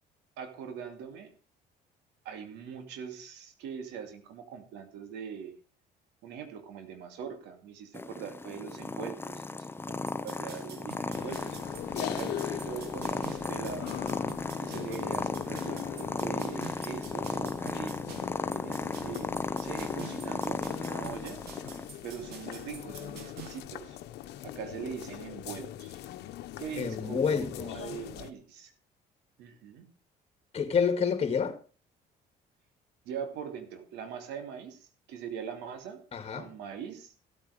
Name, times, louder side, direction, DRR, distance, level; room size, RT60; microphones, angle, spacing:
voice 1, 0.4-1.3 2.2-5.5 6.2-11.6 11.9-13.9 14.6-18.1 18.5-19.3 19.6-21.4 22.0-24.0 24.4-26.0 26.6-28.7 29.4-29.8 33.0-36.0 36.3-37.1, right 7 dB, 85° right, 2.7 m, -42 dB
Purr, 7.9-21.9, left 3 dB, 15° left, 0.7 m, -35 dB
sound 1, 10.1-23.6, right 8 dB, 70° right, 2.8 m, -49 dB
sound 2, 11.1-28.3, left 13 dB, 80° left, 1.1 m, -41 dB
voice 2, 26.8-27.9 30.5-31.6 36.1-36.5, left 6 dB, 35° left, 2.3 m, -28 dB
15.0 x 8.8 x 5.0 m
cardioid pair, 110°, 17 cm